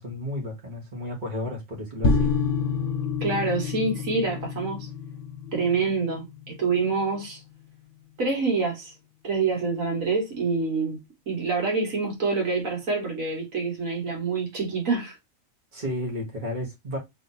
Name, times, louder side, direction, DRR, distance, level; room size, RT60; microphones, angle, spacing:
voice 1, 0.0-2.3 15.7-17.0, left 1 dB, 35° right, 1.4 m, -32 dB
sound 1, 2.0-7.3, left 4 dB, 40° left, 1.1 m, -28 dB
voice 2, 3.2-4.9 5.5-7.4 8.2-8.9 9.2-11.0 11.3-15.2, right 4 dB, 75° right, 1.7 m, -26 dB
3.4 x 2.8 x 3.9 m
omnidirectional pair, 1.4 m